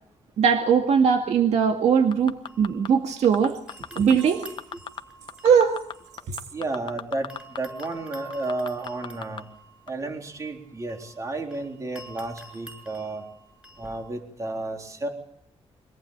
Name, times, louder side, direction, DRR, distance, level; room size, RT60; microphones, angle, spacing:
voice 1, 0.4-3.6 4.0-4.5 5.4-5.8 6.3-6.4, right 6 dB, 75° right, 4 dB, 2.1 m, -20 dB
sound 1, 1.8-3.3 3.7-6.9 7.3-14.1, right 2 dB, 10° right, 7.3 m, -48 dB
sound 2, 2.1-2.9 3.2-4.1 4.4-5.0 5.3-7.6 7.8-7.9 8.3-9.4 9.9-10.0, left 7 dB, 45° left, 1.2 m, -35 dB
voice 2, 6.5-9.5 9.9-13.2 13.8-15.1, right 2 dB, 30° right, 3 dB, 3.7 m, -32 dB
24.0 x 18.0 x 8.8 m, 0.70 s
wide cardioid pair, 160°, 11 cm